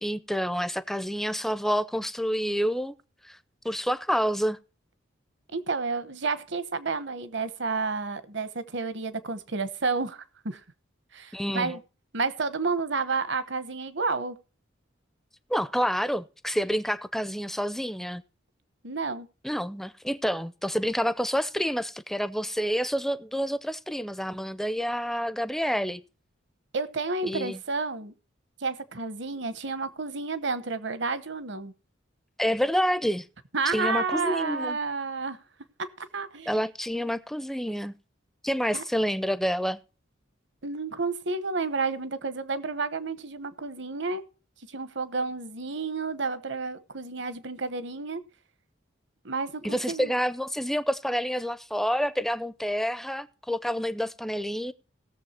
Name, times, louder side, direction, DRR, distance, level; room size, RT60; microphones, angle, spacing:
voice 1, 0.0-2.9 3.3-3.4 3.6-4.6 11.3-11.8 15.5-18.2 19.4-26.0 27.2-27.6 32.4-33.3 33.7-34.8 36.5-37.9 38.4-39.8 49.6-54.7, equal, ahead, 0.5 m, -28 dB
voice 2, 5.5-10.6 11.1-11.8 12.1-14.4 18.8-19.3 26.7-28.1 28.6-31.7 33.5-35.4 36.0-36.6 38.7-38.8 40.6-44.2 44.7-48.2 49.2-50.1, right 4 dB, 65° right, 1.0 m, -30 dB
18.0 x 7.0 x 4.3 m
head